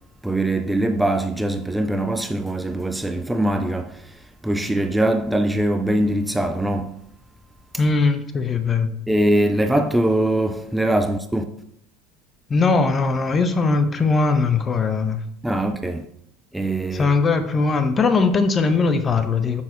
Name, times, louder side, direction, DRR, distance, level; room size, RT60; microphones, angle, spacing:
voice 1, 0.2-4.1 4.4-7.0 9.1-11.4 15.4-16.1 16.5-17.1, right 1 dB, 5° right, 0.5 m, -22 dB
voice 2, 7.8-8.9 12.5-15.2 16.9-19.6, left 4 dB, 30° left, 0.8 m, -20 dB
7.2 x 5.7 x 3.1 m
hypercardioid pair, 80°, 0 cm